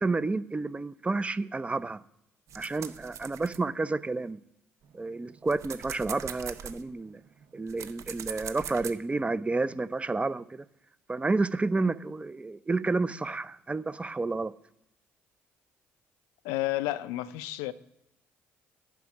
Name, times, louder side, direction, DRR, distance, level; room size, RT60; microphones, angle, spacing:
voice 1, 0.0-2.0 2.5-4.4 4.9-7.2 7.5-10.7 11.1-14.5, right 3 dB, 20° right, 16 dB, 0.5 m, -30 dB
sound 1, 2.5-4.3 4.8-8.9, right 8 dB, 60° right, 0.7 m, -42 dB
voice 2, 16.4-17.7, left 16 dB, 80° left, 14 dB, 0.5 m, -31 dB
9.4 x 5.1 x 5.8 m, 0.80 s
hypercardioid pair, 55°, 6 cm